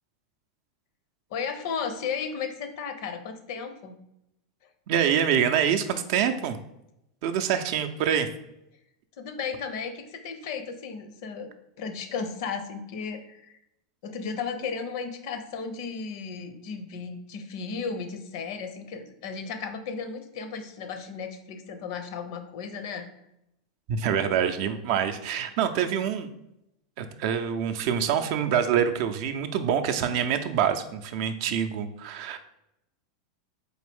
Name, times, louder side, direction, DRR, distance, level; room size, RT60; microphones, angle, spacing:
voice 1, 1.3-4.0 9.2-11.5 11.8-13.5 14.0-23.1, left 5 dB, 65° left, 8 dB, 0.5 m, -34 dB
voice 2, 4.9-6.6 7.2-8.3 23.9-26.3 27.0-32.4, right 8 dB, 60° right, 8 dB, 0.4 m, -26 dB
4.0 x 2.6 x 3.4 m, 0.83 s
hypercardioid pair, 105°, 2 cm